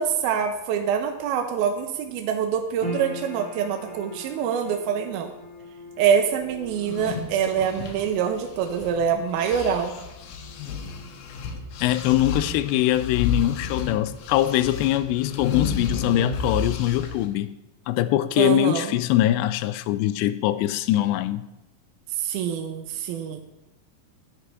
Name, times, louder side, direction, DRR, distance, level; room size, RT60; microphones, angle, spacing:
voice 1, 0.0-5.3 6.0-9.9 18.4-18.9 22.2-23.4, right 7 dB, 75° right, 2.4 m, -25 dB
sound 1, 2.8-15.2 15.5-16.4 16.9-17.0, left 1 dB, 30° left, 0.5 m, -43 dB
sound 2, 6.7-9.1 9.4-17.3, left 5 dB, 70° left, 2.7 m, -32 dB
voice 2, 11.8-17.6 17.9-21.5, left 14 dB, 90° left, 2.8 m, -22 dB
11.0 x 8.0 x 4.8 m
omnidirectional pair, 4.9 m